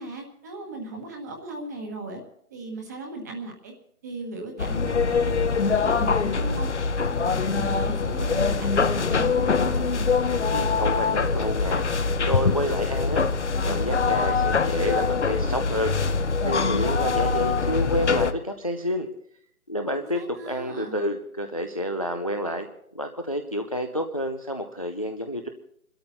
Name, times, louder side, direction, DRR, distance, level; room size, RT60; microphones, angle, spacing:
voice 1, 0.0-2.2 2.5-3.7 4.0-5.4 5.7-6.7 7.1-9.9 19.9-21.0, right 2 dB, 10° right, 3 dB, 1.4 m, -37 dB
sound 1, 4.6-18.3, left 4 dB, 50° left, 1.0 m, -23 dB
voice 2, 10.5-11.9 12.2-13.2 13.7-15.9 16.4-19.1 19.7-22.7 22.9-25.5, equal, 25° left, 7 dB, 0.6 m, -29 dB
22.0 x 13.0 x 4.1 m, 0.70 s
hypercardioid pair, 170°, 44 cm